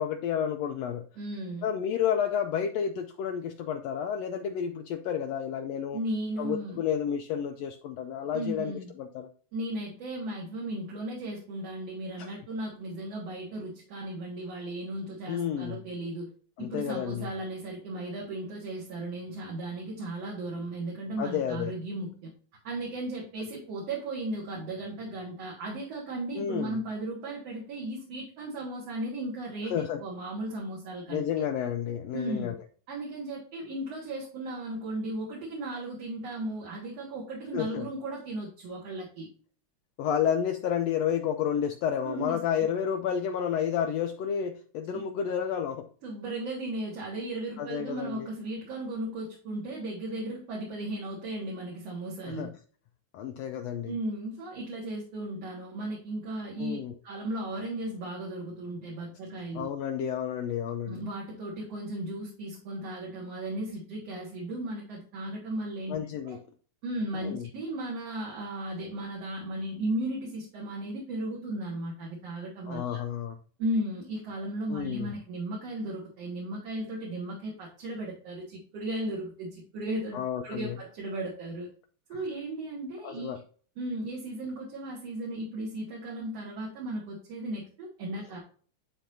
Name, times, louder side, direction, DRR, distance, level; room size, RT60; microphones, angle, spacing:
voice 1, 0.0-1.1 1.6-6.0 6.4-8.7 9.0-9.3 12.2-12.3 15.3-15.8 16.6-17.3 21.2-21.8 26.3-26.8 29.7-30.0 31.1-32.5 37.5-37.8 40.0-45.9 47.6-48.3 52.3-52.5 53.1-53.9 56.6-56.9 59.5-61.0 65.9-66.4 67.2-67.5 72.7-73.4 74.7-75.1 80.1-80.8 83.0-83.4, left 8 dB, 85° left, 6 dB, 1.5 m, -31 dB
voice 2, 1.2-1.7 5.9-6.8 8.3-8.9 9.5-16.3 16.6-22.3 22.6-31.3 32.1-32.5 32.9-39.3 42.0-42.4 44.9-45.1 46.0-52.5 53.9-56.8 57.0-59.7 60.9-66.0 66.2-66.4 66.8-73.0 73.6-81.7 82.1-83.4 83.8-88.4, right 1 dB, 60° right, -3 dB, 2.5 m, -36 dB
10.5 x 4.1 x 2.6 m, 0.44 s
omnidirectional pair, 3.5 m